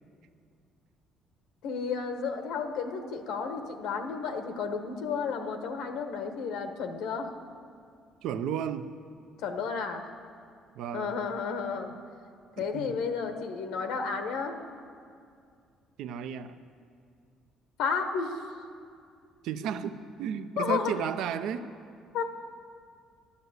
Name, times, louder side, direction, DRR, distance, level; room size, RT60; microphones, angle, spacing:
voice 1, 1.6-7.3 9.4-10.1 10.9-11.9 12.6-14.6 17.8-18.4 20.6-21.1 22.1-22.2, left 5 dB, 85° left, 6 dB, 1.2 m, -32 dB
voice 2, 8.2-8.9 10.8-11.2 12.6-13.0 16.0-16.6 19.4-21.6, right 8 dB, 75° right, 11 dB, 0.6 m, -33 dB
11.0 x 11.0 x 8.1 m, 2.3 s
cardioid pair, 135°, 0 cm